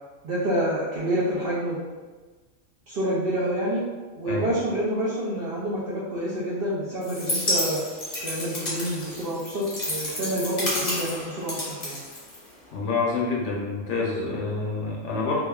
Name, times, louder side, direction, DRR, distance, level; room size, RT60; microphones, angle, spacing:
voice 1, 0.2-1.8 2.9-3.8 4.2-7.8 8.2-12.0, right 1 dB, 60° right, -8 dB, 0.6 m, -28 dB
sound 1, 7.0-12.7, left 1 dB, 35° left, 0.6 m, -30 dB
voice 2, 12.7-15.4, left 3 dB, 70° left, -3 dB, 0.9 m, -27 dB
2.8 x 2.2 x 2.2 m, 1.3 s
omnidirectional pair, 1.3 m